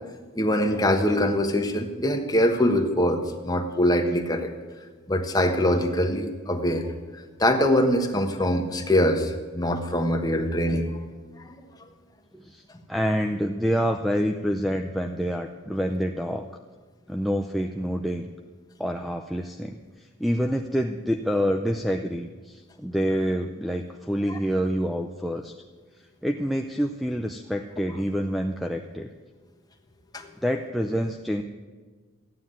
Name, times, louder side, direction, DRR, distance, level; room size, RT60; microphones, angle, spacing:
voice 1, 0.3-4.5 5.1-6.9 7.4-10.9 11.4-11.6 24.3-24.4 30.1-30.3, left 1 dB, 20° left, 4 dB, 1.2 m, -23 dB
voice 2, 12.9-16.5 17.1-18.3 18.8-25.5 26.2-29.1 30.4-31.4, equal, ahead, 2 dB, 0.5 m, -27 dB
14.0 x 9.5 x 9.5 m, 1.4 s
head